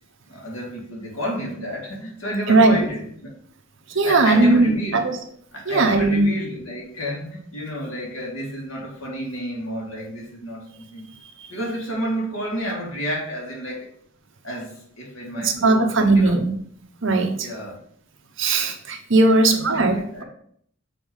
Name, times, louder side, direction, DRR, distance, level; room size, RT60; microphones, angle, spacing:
voice 1, 0.3-3.3 4.0-5.0 5.5-11.1 11.5-13.9 14.4-16.4 17.4-17.8 19.2-20.2, equal, 90° left, -3 dB, 2.6 m, -30 dB
voice 2, 2.5-2.8 3.9-5.2 5.7-6.3 15.4-16.5 17.0-17.5 18.4-20.2, right 2 dB, 65° right, 5 dB, 1.0 m, -18 dB
6.9 x 3.6 x 5.5 m, 0.63 s
head